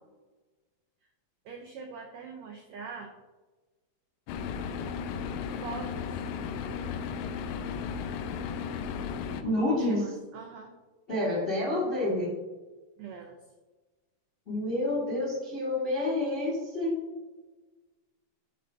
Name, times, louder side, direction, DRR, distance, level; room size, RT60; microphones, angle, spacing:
voice 1, 1.4-3.1 5.5-6.3 9.6-10.7 13.0-13.4, right 5 dB, 90° right, 2 dB, 1.5 m, -43 dB
sound 1, 4.3-9.4, left 6 dB, 80° left, 2.2 m, -35 dB
voice 2, 9.4-10.1 11.1-12.3 14.5-17.0, left 1 dB, 25° left, -4 dB, 1.3 m, -28 dB
11.0 x 3.9 x 3.5 m, 1.2 s
omnidirectional pair, 4.1 m